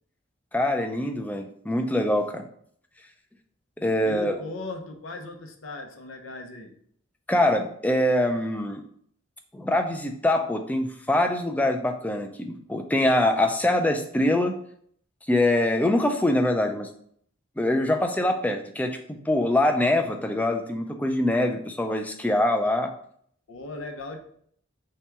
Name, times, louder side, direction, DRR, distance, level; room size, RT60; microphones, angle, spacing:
voice 1, 0.5-2.4 3.8-4.3 7.3-8.8 9.5-14.6 15.3-16.9 17.6-22.9, left 1 dB, 10° left, 5 dB, 0.4 m, -24 dB
voice 2, 4.0-6.7 23.5-24.2, left 2 dB, 90° left, 4 dB, 0.7 m, -38 dB
3.4 x 2.9 x 4.5 m, 0.63 s
head